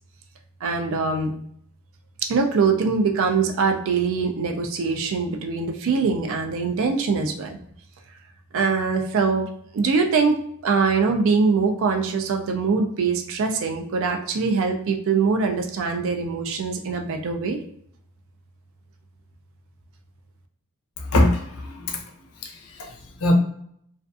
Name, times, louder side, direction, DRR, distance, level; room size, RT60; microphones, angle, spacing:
voice 1, 0.6-1.3 2.2-7.6 8.5-10.4 10.6-17.6, right 4 dB, 65° right, 4 dB, 0.4 m, -23 dB
voice 2, 21.0-22.0 22.4-23.3, left 1 dB, 85° left, 3 dB, 0.6 m, -23 dB
2.4 x 2.4 x 2.4 m, 0.68 s
head